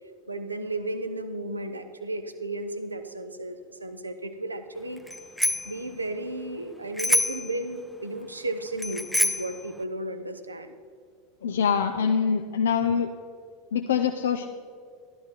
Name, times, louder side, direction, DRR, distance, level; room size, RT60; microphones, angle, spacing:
voice 1, 0.3-5.0 5.6-10.8, right 2 dB, 85° right, 9 dB, 0.7 m, -34 dB
Bicycle bell, 5.1-5.8 7.0-7.5 8.8-9.6, left 1 dB, ahead, 0.6 m, -26 dB
voice 2, 11.4-13.1 13.7-14.5, left 7 dB, 70° left, 6 dB, 0.5 m, -24 dB
12.0 x 11.5 x 4.5 m, 2.2 s
figure-of-eight pair, 80°, 0 cm